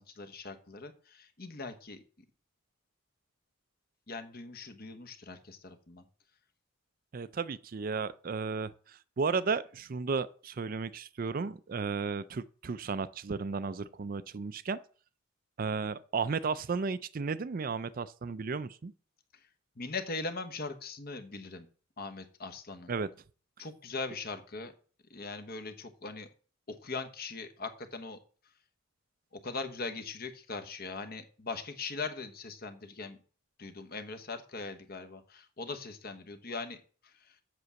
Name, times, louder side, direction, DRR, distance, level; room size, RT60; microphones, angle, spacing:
voice 1, 0.0-2.0 4.1-6.0 19.8-21.7 22.0-22.9 23.6-24.7 25.1-26.3 26.7-28.2 29.4-33.2 33.6-37.4, left 3 dB, 45° left, 1.1 m, -40 dB
voice 2, 7.1-14.8 15.6-18.9 22.9-23.1, right 4 dB, 40° right, 0.4 m, -34 dB
8.0 x 6.1 x 6.9 m
head